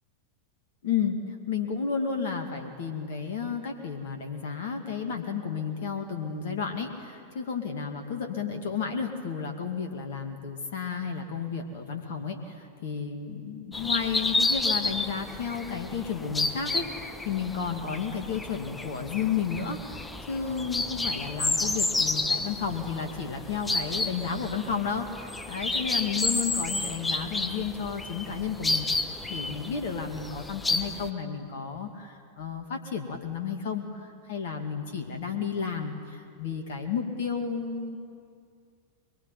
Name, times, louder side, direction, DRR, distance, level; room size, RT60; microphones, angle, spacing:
voice 1, 0.8-1.2 1.5-38.0, left 6 dB, 55° left, 5 dB, 2.3 m, -32 dB
sound 1, 13.7-31.1, left 2 dB, 10° left, 1.2 m, -31 dB
23.5 x 23.0 x 9.4 m, 2.3 s
figure-of-eight pair, 90°, 0 cm